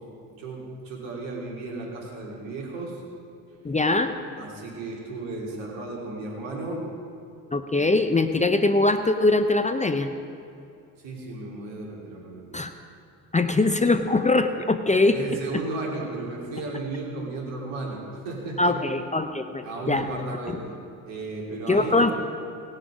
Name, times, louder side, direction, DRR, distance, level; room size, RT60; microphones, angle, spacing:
voice 1, 0.4-3.0 4.4-6.8 11.0-12.6 13.4-13.6 15.1-18.8 19.6-22.1, right 2 dB, 70° right, -2 dB, 3.1 m, -34 dB
voice 2, 3.6-4.1 7.5-10.1 12.5-12.7 13.3-15.2 18.6-20.1 21.7-22.1, left 2 dB, 15° left, 8 dB, 0.8 m, -22 dB
19.5 x 6.5 x 5.0 m, 2.6 s
hypercardioid pair, 55°, 45 cm